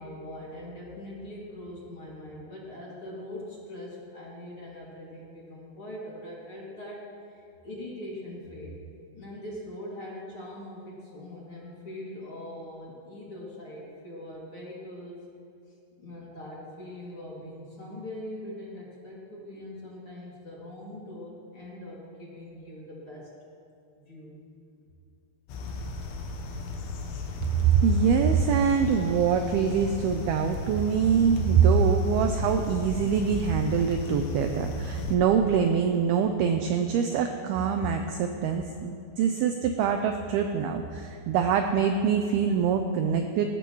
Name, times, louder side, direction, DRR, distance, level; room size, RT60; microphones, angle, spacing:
voice 1, 0.0-8.8 9.1-15.2 16.0-23.3 24.1-24.4, left 1 dB, 35° left, -6 dB, 2.6 m, -42 dB
sound 1, 25.5-35.2, left 3 dB, 85° left, 3.5 m, -35 dB
voice 2, 27.6-43.5, right 6 dB, 85° right, 5 dB, 2.2 m, -24 dB
20.0 x 16.0 x 3.1 m, 2.5 s
omnidirectional pair, 5.1 m